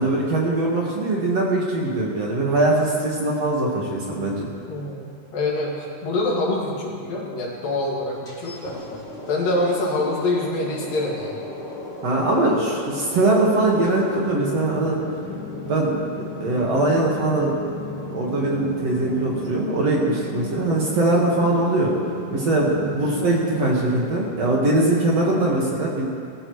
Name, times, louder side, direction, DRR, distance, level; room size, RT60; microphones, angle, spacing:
voice 1, 0.0-4.5 12.0-15.0 15.7-16.0 16.4-17.5 18.1-21.9 22.3-26.0, right 2 dB, 55° right, -3 dB, 2.4 m, -21 dB
voice 2, 4.7-5.7 6.0-9.0 9.3-11.4 22.8-22.9, left 2 dB, 70° left, -4 dB, 3.8 m, -25 dB
sound 1, 8.3-25.5, left 2 dB, 20° left, 3.3 m, -35 dB
21.0 x 14.0 x 3.2 m, 2.3 s
omnidirectional pair, 4.2 m